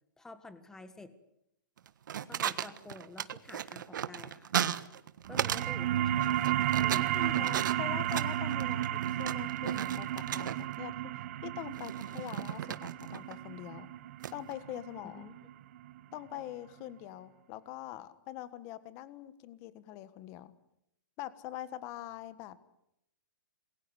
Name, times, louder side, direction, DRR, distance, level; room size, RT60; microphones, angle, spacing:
voice 1, 0.2-1.1 2.3-4.5 5.3-7.2 15.0-15.4, left 3 dB, 5° left, 11 dB, 1.5 m, -50 dB
sound 1, 1.8-5.7 6.0-10.8 11.7-13.3 14.2-14.5, right 9 dB, 65° right, 1.5 m, -36 dB
sound 2, 5.3-16.4, right 12 dB, 40° right, 1.1 m, -33 dB
voice 2, 6.9-13.9 14.3-15.3 16.1-20.5 21.2-22.6, left 14 dB, 25° left, 14 dB, 1.5 m, -44 dB
27.5 x 22.0 x 8.1 m, 0.80 s
hypercardioid pair, 165°, 11 cm